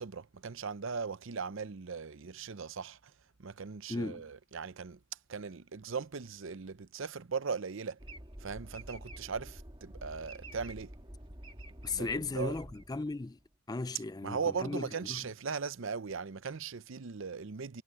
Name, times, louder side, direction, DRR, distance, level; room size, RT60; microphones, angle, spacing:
voice 1, 0.0-3.0 3.4-5.0 5.3-8.0 8.4-10.9 11.9-12.5 14.2-17.8, right 5 dB, 60° right, 0.6 m, -38 dB
voice 2, 3.9-4.3 11.8-13.4 13.7-15.2, left 3 dB, 20° left, 0.4 m, -36 dB
sound 1, 8.0-13.4, right 1 dB, 25° right, 1.6 m, -48 dB
head